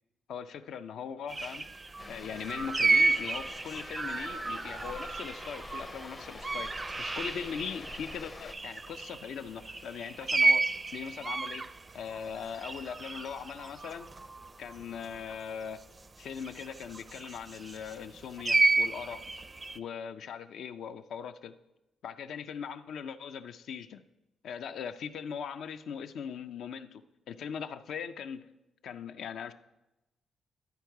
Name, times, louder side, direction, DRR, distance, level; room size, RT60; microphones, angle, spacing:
voice 1, 0.3-1.7 2.1-6.7 7.0-11.6 11.9-14.1 14.6-15.8 16.2-19.2 19.7-21.5 22.0-24.0 24.4-27.0 27.3-28.5 28.8-29.5, left 7 dB, 75° left, 0.4 m, -40 dB
sound 1, 1.3-8.2 8.5-15.3 16.4-17.9 18.4-19.8, right 3 dB, 30° right, 0.4 m, -31 dB
sound 2, 2.0-8.5, left 2 dB, 25° left, 0.5 m, -47 dB
12.0 x 4.5 x 4.7 m
cardioid pair, 85°, 0 cm